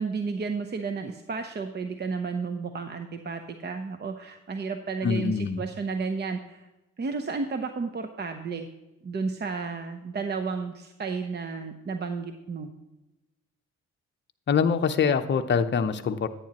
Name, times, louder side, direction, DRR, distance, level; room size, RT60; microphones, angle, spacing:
voice 1, 0.0-6.7 7.0-8.7 9.0-12.7, right 4 dB, 35° right, 6 dB, 0.8 m, -32 dB
voice 2, 5.0-5.6 14.5-16.3, left 6 dB, 35° left, 7 dB, 0.7 m, -24 dB
10.0 x 9.6 x 2.9 m, 1.0 s
cardioid pair, 90°, 30 cm